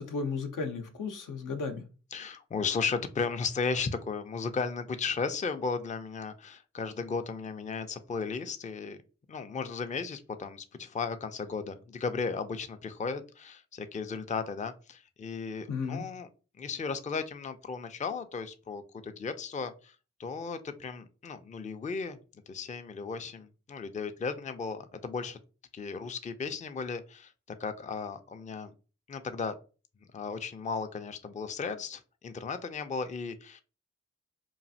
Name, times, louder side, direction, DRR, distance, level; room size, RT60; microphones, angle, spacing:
voice 1, 0.0-1.8 15.7-16.0, left 4 dB, 75° left, 5 dB, 0.6 m, -34 dB
voice 2, 2.1-9.0 9.3-16.3 16.6-25.4 25.7-27.3 27.6-28.7 29.1-29.6 30.1-33.6, left 5 dB, 25° left, 9 dB, 0.4 m, -35 dB
3.1 x 2.4 x 2.7 m, 0.34 s
cardioid pair, 45°, 32 cm